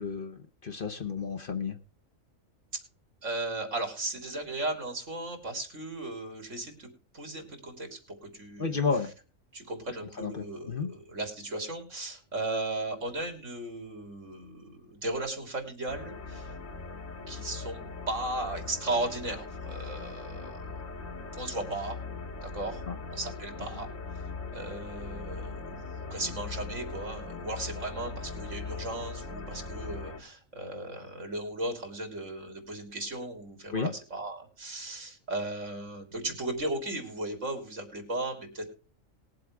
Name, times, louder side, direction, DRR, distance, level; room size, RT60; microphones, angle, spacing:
voice 1, 0.0-1.8 8.6-9.1 10.2-10.9 22.9-23.0 33.7-33.9, left 5 dB, 45° left, 6 dB, 1.0 m, -32 dB
voice 2, 3.2-6.9 7.1-8.8 9.5-16.5 17.3-20.8 21.3-22.0 22.4-22.8 23.1-23.9 24.5-38.7, right 2 dB, 70° right, 4 dB, 3.6 m, -36 dB
sound 1, 15.9-30.2, left 3 dB, 80° left, 2.7 m, -40 dB
20.5 x 7.7 x 3.4 m, 0.37 s
omnidirectional pair, 1.4 m